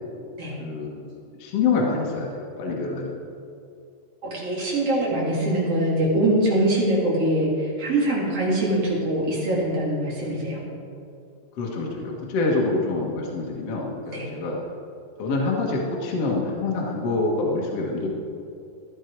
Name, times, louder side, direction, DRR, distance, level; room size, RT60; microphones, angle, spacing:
voice 1, 0.6-1.1 1.4-3.2 11.6-14.6 15.2-18.1, left 3 dB, 60° left, -2 dB, 1.6 m, -26 dB
voice 2, 4.2-10.6 14.1-14.3, right 1 dB, 40° right, -5 dB, 3.2 m, -23 dB
14.5 x 10.5 x 4.7 m, 2.6 s
omnidirectional pair, 5.0 m